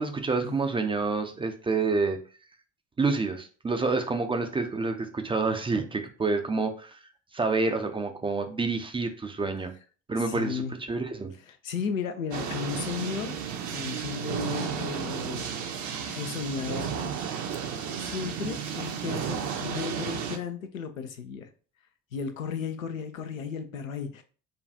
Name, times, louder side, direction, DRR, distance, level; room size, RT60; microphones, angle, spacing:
voice 1, 0.0-2.2 3.0-7.0 7.3-9.7 10.1-11.3, right 3 dB, 15° right, 6 dB, 0.4 m, -28 dB
voice 2, 10.3-10.7 11.5-13.4 13.7-15.4 16.1-16.9 18.0-21.5 22.1-24.2, left 6 dB, 85° left, 6 dB, 0.5 m, -34 dB
sound 1, 12.3-20.4, right 7 dB, 45° right, 0.7 m, -33 dB
5.1 x 2.3 x 2.6 m, 0.40 s
figure-of-eight pair, 50°, 39 cm